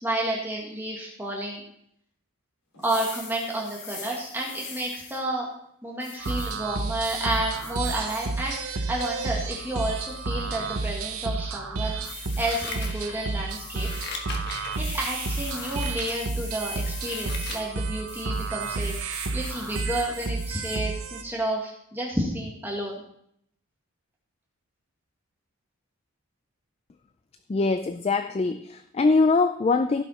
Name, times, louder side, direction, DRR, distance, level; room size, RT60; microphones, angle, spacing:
voice 1, 0.0-1.6 2.8-5.5 5.8-12.0 12.4-13.9 14.8-23.0, right 1 dB, 10° right, -3 dB, 1.6 m, -31 dB
sound 1, 2.7-5.2 6.0-6.5 7.0-8.3 8.7-9.3 9.9-10.2 12.0-12.9 13.5-14.1 14.7-17.6 18.1-20.8, left 4 dB, 90° left, 3.5 m, -42 dB
sound 2, 6.2-21.2, right 3 dB, 85° right, 1.0 m, -31 dB
Scissors, 12.3-13.4 13.7-14.8 15.4-16.2 16.6-17.7 18.1-18.2, left 4 dB, 50° left, 1.4 m, -38 dB
voice 2, 27.5-30.0, left 3 dB, 30° left, 10 dB, 0.3 m, -23 dB
15.5 x 5.6 x 4.1 m, 0.71 s
head